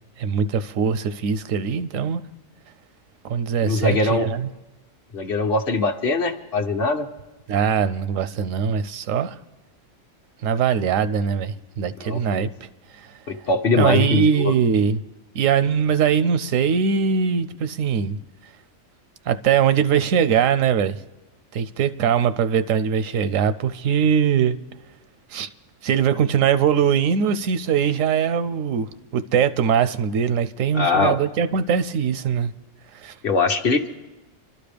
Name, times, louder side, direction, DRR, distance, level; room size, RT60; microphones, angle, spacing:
voice 1, 0.0-2.2 3.2-4.5 7.5-9.4 10.4-12.7 13.0-13.1 13.8-15.0 15.3-18.2 19.3-21.0 21.5-24.6 25.3-25.5 25.8-32.5 32.9-33.2, right 7 dB, 85° right, 1.0 m, -21 dB
voice 2, 3.6-4.3 5.1-7.1 12.0-12.5 13.3-14.5 30.7-31.2 33.2-33.9, left 3 dB, 50° left, 1.0 m, -22 dB
26.5 x 12.0 x 3.4 m
omnidirectional pair, 1.3 m